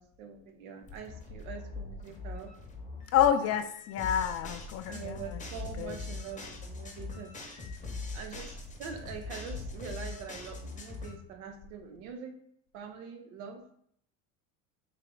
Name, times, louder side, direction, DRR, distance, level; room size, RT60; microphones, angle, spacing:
voice 1, 0.0-2.5 4.9-7.3 8.1-12.4 12.7-13.6, right 6 dB, 80° right, 5 dB, 0.8 m, -44 dB
sound 1, 0.8-11.2, left 3 dB, 20° left, 0.8 m, -42 dB
voice 2, 3.1-5.4 5.8-6.0, left 9 dB, 40° left, 8 dB, 0.4 m, -28 dB
3.3 x 3.2 x 3.8 m, 0.68 s
supercardioid pair, 105°, 40 cm